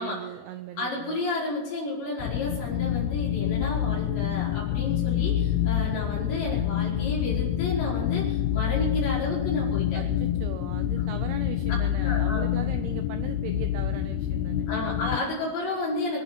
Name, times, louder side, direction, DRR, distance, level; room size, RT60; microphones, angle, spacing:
voice 1, 0.0-1.2 9.9-14.7 15.2-15.3, right 10 dB, 80° right, 8 dB, 2.3 m, -39 dB
voice 2, 0.8-10.0 12.0-12.5 14.7-16.2, left 2 dB, 65° left, -7 dB, 7.1 m, -31 dB
sound 1, 2.2-15.2, left 11 dB, 90° left, 2.3 m, -27 dB
25.5 x 9.1 x 6.0 m, 1.1 s
omnidirectional pair, 5.5 m